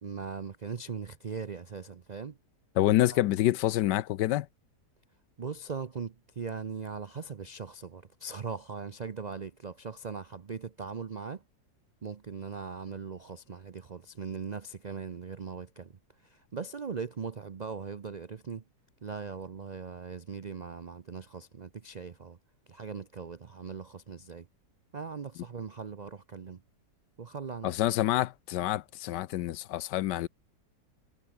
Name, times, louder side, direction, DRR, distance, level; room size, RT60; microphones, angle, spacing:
voice 1, 0.0-2.4 2.8-2.9 5.4-11.4 12.0-18.6 19.0-22.4 22.7-24.5 24.9-26.6 27.2-27.8, right 5 dB, 70° right, 0.4 m, -40 dB
voice 2, 2.8-4.5 27.6-30.3, left 14 dB, 90° left, 1.3 m, -27 dB
omnidirectional pair, 1.8 m